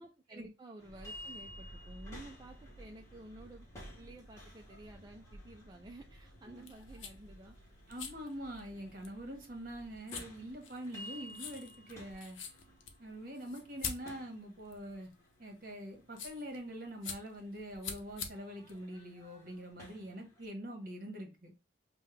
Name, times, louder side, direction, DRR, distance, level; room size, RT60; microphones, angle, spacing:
voice 1, 0.0-3.7 4.0-7.6, right 1 dB, 20° right, 0.4 m, -52 dB
sound 1, 0.8-20.5, left 1 dB, 15° left, 1.1 m, -55 dB
sound 2, 0.9-9.9, right 1 dB, 45° left, 0.8 m, -55 dB
sound 3, 6.5-19.7, left 6 dB, 85° left, 0.8 m, -47 dB
voice 2, 7.9-12.4 13.0-15.1 15.4-21.5, equal, 50° right, 1.3 m, -44 dB
5.4 x 2.2 x 3.2 m
head